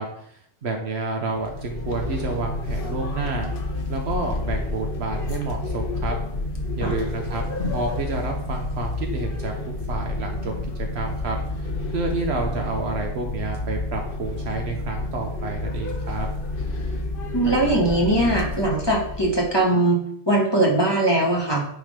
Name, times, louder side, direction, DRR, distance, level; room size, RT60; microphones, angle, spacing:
voice 1, 0.0-3.5 3.9-6.1 6.8-7.4 7.7-9.6 9.9-10.5 10.9-16.3, right 3 dB, 85° right, 2 dB, 1.2 m, -29 dB
sound 1, 1.3-19.6, left 2 dB, 60° left, 1.0 m, -29 dB
voice 2, 17.3-21.7, right 1 dB, 25° left, -2 dB, 1.5 m, -21 dB
9.3 x 3.8 x 5.1 m, 0.70 s
omnidirectional pair, 1.1 m